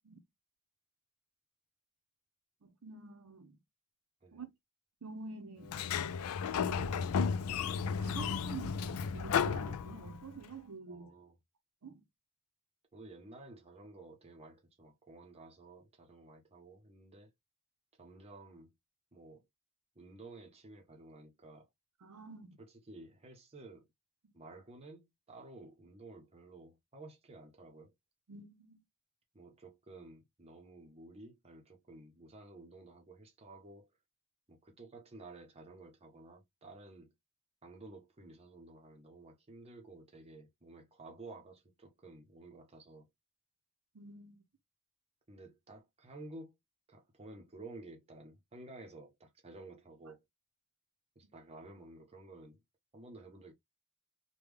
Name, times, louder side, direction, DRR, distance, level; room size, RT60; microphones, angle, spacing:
voice 1, 2.6-3.6 4.3-4.5 5.0-5.8 6.5-7.2 8.0-11.1 11.8-12.0 22.0-22.6 24.2-24.3 28.3-28.8 43.9-44.4, right 4 dB, 85° right, 0.7 m, -48 dB
Sliding door, 5.6-10.4, left 6 dB, 70° left, 0.4 m, -34 dB
voice 2, 10.9-11.3 12.9-17.3 18.0-18.7 19.1-19.4 20.0-21.7 22.6-23.9 24.3-27.9 29.3-33.9 34.5-37.1 37.6-43.1 45.3-46.6 46.9-50.2 51.2-52.6 52.9-53.5, right 2 dB, 30° right, 0.7 m, -53 dB
3.5 x 2.2 x 3.2 m
head